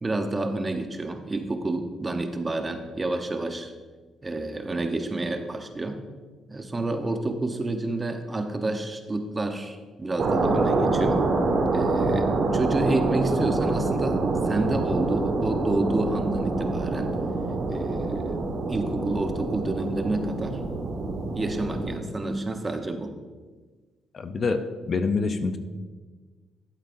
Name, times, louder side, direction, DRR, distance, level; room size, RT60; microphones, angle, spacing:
voice 1, 0.0-3.7 4.2-6.0 6.5-11.2 11.7-17.2 17.7-18.4 18.7-20.6 21.3-23.1, right 2 dB, 25° right, 6 dB, 0.9 m, -29 dB
sound 1, 10.2-22.0, right 3 dB, 60° right, 1.4 m, -26 dB
voice 2, 24.1-24.6 24.9-25.6, left 4 dB, 45° left, 8 dB, 0.6 m, -25 dB
12.0 x 8.2 x 2.6 m, 1.4 s
cardioid pair, 90°, 0 cm